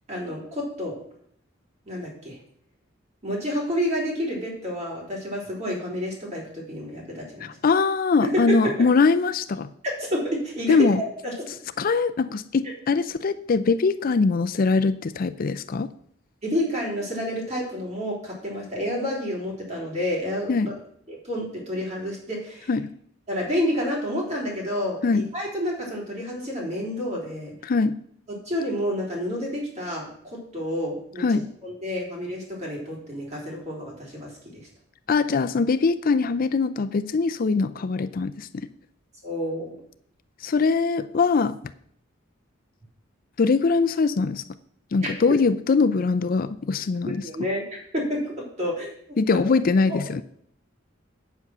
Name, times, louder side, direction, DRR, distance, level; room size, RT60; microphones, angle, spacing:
voice 1, 0.1-1.0 1.9-2.4 3.2-7.6 8.2-8.7 9.8-11.3 16.4-20.7 21.1-22.7 23.3-27.5 28.3-34.6 39.2-39.7 45.0-45.1 47.2-49.4 49.9-50.0, equal, 35° right, -3 dB, 3.8 m, -29 dB
voice 2, 7.4-9.7 10.7-11.0 11.8-15.9 20.5-20.7 22.7-22.9 25.0-25.3 27.6-28.0 31.2-31.4 35.1-38.7 40.4-41.6 43.4-44.4 44.9-47.2 49.2-50.2, left 4 dB, 45° left, 12 dB, 0.4 m, -22 dB
8.1 x 8.1 x 6.1 m, 0.67 s
head